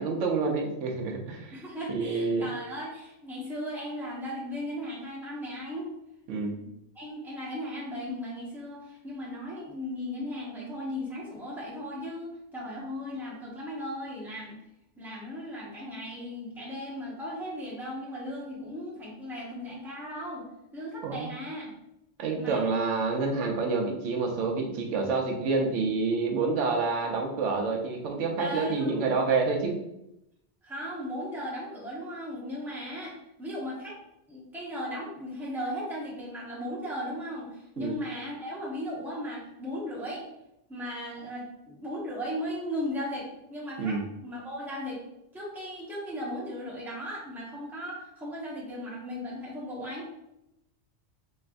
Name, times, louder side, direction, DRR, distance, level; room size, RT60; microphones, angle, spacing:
voice 1, 0.0-1.6 1.9-2.5 6.3-6.6 21.0-21.3 22.2-29.8 37.8-37.9 43.8-44.0, right 4 dB, 85° right, 2 dB, 1.0 m, -28 dB
voice 2, 1.5-5.9 6.4-6.7 6.9-14.6 15.0-20.5 20.7-21.7 22.4-22.6 28.4-29.1 30.6-34.0 34.3-40.3 40.7-45.0 45.3-50.1, equal, ahead, -6 dB, 1.0 m, -37 dB
3.9 x 3.2 x 2.5 m, 0.86 s
omnidirectional pair, 1.2 m